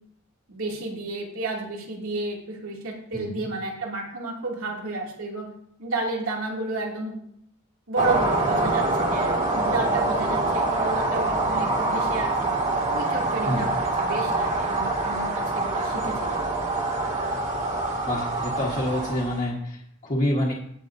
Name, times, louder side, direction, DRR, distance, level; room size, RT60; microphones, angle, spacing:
voice 1, 0.5-5.5 5.8-7.2 7.9-12.5 12.9-16.5, right 2 dB, 80° right, -2 dB, 2.6 m, -31 dB
voice 2, 3.1-3.4 13.5-13.6 18.1-20.5, left 1 dB, 35° left, -5 dB, 1.5 m, -27 dB
sound 1, 8.0-19.5, right 2 dB, 35° right, 2.2 m, -25 dB
17.5 x 7.0 x 2.7 m, 0.69 s
head